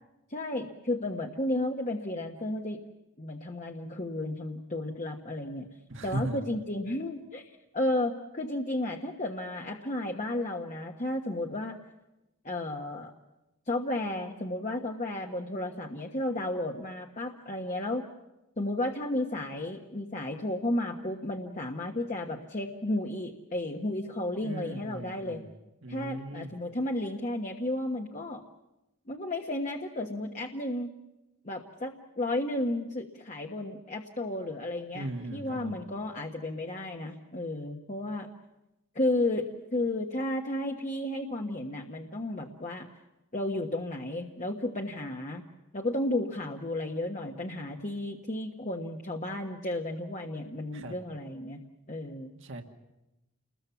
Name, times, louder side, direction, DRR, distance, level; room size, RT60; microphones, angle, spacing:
voice 1, 0.3-2.8 3.2-5.7 6.0-11.8 12.4-13.1 13.7-18.1 18.6-25.4 25.9-28.4 29.1-30.9 31.4-38.3 38.9-39.4 39.7-42.9 43.3-45.4 45.7-51.6 51.9-52.3, left 1 dB, 35° left, 2 dB, 1.4 m, -33 dB
voice 2, 5.9-6.4 24.4-25.5 25.8-26.5 34.9-35.7 50.7-50.9 52.4-52.6, right 1 dB, 60° right, 3 dB, 1.9 m, -37 dB
29.0 x 21.5 x 7.2 m, 0.95 s
head